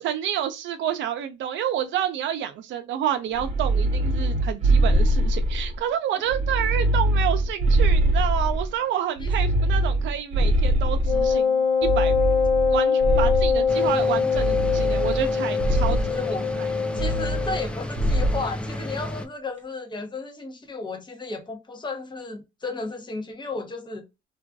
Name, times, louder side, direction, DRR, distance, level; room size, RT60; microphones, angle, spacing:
voice 1, 0.0-12.1 12.7-16.0, right 10 dB, 70° right, 0.4 m, -29 dB
sound 1, 3.3-5.8 6.3-8.7 9.2-11.3 11.8-13.7 14.3-15.3 15.6-16.1 17.0-17.7 18.0-18.4, right 1 dB, 35° right, 0.7 m, -23 dB
Wind instrument woodwind instrument, 11.0-17.7, left 5 dB, 65° left, 0.9 m, -23 dB
sound 2, 13.7-19.3, left 1 dB, 5° left, 0.3 m, -33 dB
voice 2, 15.9-24.0, left 3 dB, 25° left, 0.8 m, -34 dB
2.5 x 2.2 x 2.2 m
cardioid pair, 90°, 20 cm